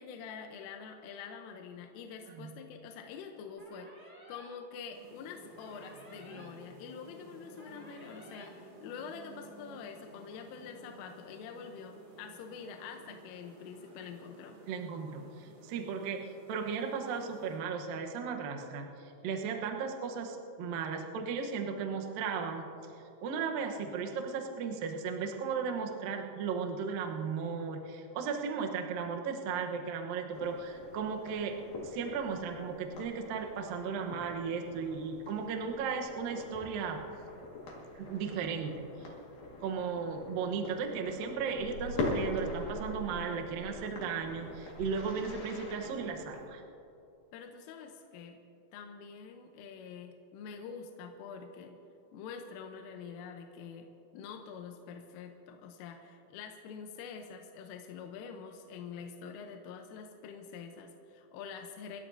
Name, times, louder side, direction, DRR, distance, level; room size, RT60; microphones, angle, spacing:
voice 1, 0.0-14.6 47.3-48.4 48.7-51.8 52.1-53.9 54.1-62.0, left 6 dB, 80° left, 3 dB, 3.4 m, -46 dB
sound 1, 3.6-4.5 5.6-6.5 7.6-8.5, right 1 dB, 15° right, 2.4 m, -55 dB
sound 2, 4.9-17.6, right 2 dB, 55° right, 5.9 m, -54 dB
voice 2, 14.7-22.7 23.2-31.6 31.8-37.0 38.0-38.9 39.6-46.6, right 5 dB, 85° right, 2 dB, 2.0 m, -36 dB
sound 3, 30.3-46.5, left 2 dB, 50° left, 2.6 m, -42 dB
28.5 x 12.5 x 2.8 m, 2.7 s
omnidirectional pair, 5.9 m